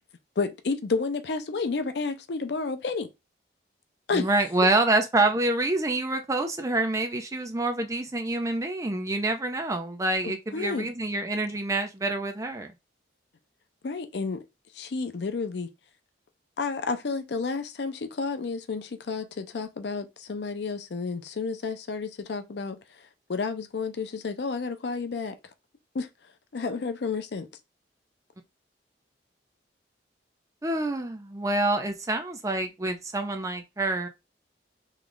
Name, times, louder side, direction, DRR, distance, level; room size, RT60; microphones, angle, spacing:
voice 1, 0.4-3.1 4.1-4.3 10.2-10.9 13.8-14.4 14.7-15.7 16.6-25.3 25.9-26.1 26.5-27.5, left 4 dB, 70° left, 0.5 m, -31 dB
voice 2, 4.1-12.7 30.6-34.1, right 2 dB, 20° right, 0.5 m, -27 dB
3.1 x 2.3 x 3.8 m
head